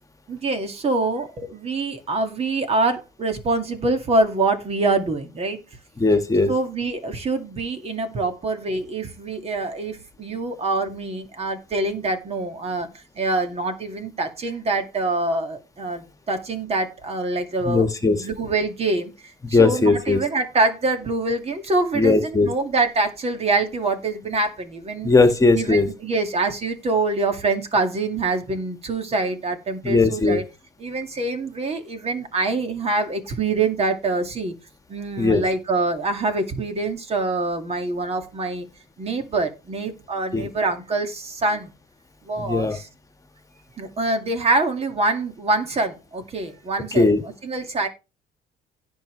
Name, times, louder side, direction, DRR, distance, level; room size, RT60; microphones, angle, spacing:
voice 1, 0.3-5.6 6.5-12.9 13.2-17.9 18.2-25.1 25.6-30.4 30.8-34.5 34.9-38.7 39.0-41.7 42.2-42.9 43.8-47.1 47.4-47.9, right 3 dB, 35° right, 2.3 m, -25 dB
voice 2, 6.0-6.5 17.6-18.3 19.5-20.2 21.9-22.5 25.0-25.9 29.8-30.4 35.2-35.4 40.3-40.5 42.4-42.8 46.9-47.2, left 3 dB, 20° left, 1.9 m, -18 dB
16.5 x 5.6 x 3.3 m
cardioid pair, 110°, 17 cm